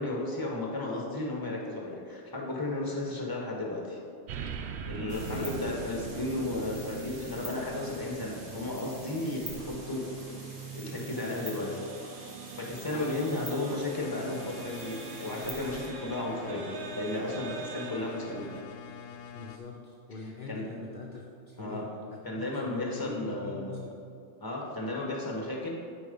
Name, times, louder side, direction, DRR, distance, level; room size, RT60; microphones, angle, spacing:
voice 1, 0.0-4.0 4.9-10.0 10.7-11.8 12.5-16.7 16.9-18.5 20.5-20.7 21.6-21.8 22.2-23.8 24.4-25.8, left 2 dB, 15° left, -2 dB, 1.4 m, -34 dB
sound 1, 4.3-18.6, right 6 dB, 65° right, 0.8 m, -42 dB
sound 2, 5.1-15.9, right 1 dB, 45° right, 1.8 m, -46 dB
voice 2, 12.9-13.5 15.9-16.2 19.3-24.0, left 3 dB, 45° left, -2 dB, 0.9 m, -43 dB
sound 3, 13.9-19.6, left 7 dB, 75° left, 1.0 m, -46 dB
11.5 x 4.6 x 5.3 m, 2.3 s
omnidirectional pair, 1.3 m